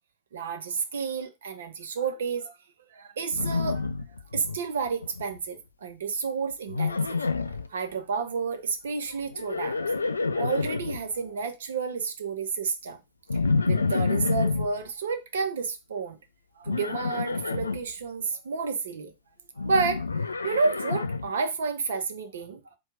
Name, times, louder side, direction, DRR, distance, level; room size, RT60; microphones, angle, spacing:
voice 1, 0.3-2.6 2.9-3.9 4.3-7.2 7.4-10.0 10.3-13.0 13.6-16.2 16.6-19.1 19.6-22.8, right 5 dB, 65° right, 0.7 m, -31 dB
Livestock farm animals working animals, 3.3-4.6 4.9-5.4 6.7-7.7 9.3-11.0 13.3-14.7 16.7-17.8 19.6-21.3, left 4 dB, 75° left, 0.3 m, -28 dB
4.4 x 2.3 x 4.8 m
figure-of-eight pair, 90°, 0 cm